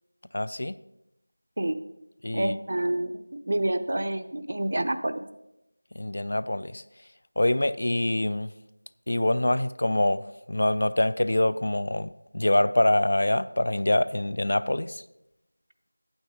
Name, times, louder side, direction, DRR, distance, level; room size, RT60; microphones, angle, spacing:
voice 1, 0.3-0.7 2.2-2.6 6.0-6.8 7.4-8.5 9.1-15.0, left 1 dB, 50° left, 16 dB, 0.3 m, -25 dB
voice 2, 2.3-5.2, right 1 dB, 45° right, 10 dB, 0.6 m, -28 dB
9.0 x 7.9 x 4.8 m, 0.88 s
figure-of-eight pair, 170°, 0 cm